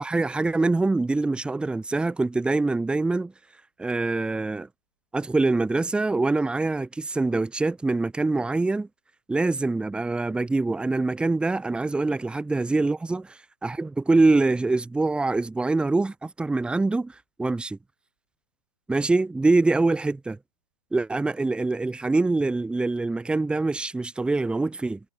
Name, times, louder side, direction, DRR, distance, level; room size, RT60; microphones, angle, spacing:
voice 1, 0.0-3.3 3.8-4.7 5.1-8.9 9.3-13.2 13.6-17.8 18.9-20.4 20.9-25.0, right 3 dB, 5° right, 2.2 m, -24 dB
hypercardioid pair, 130°, 16 cm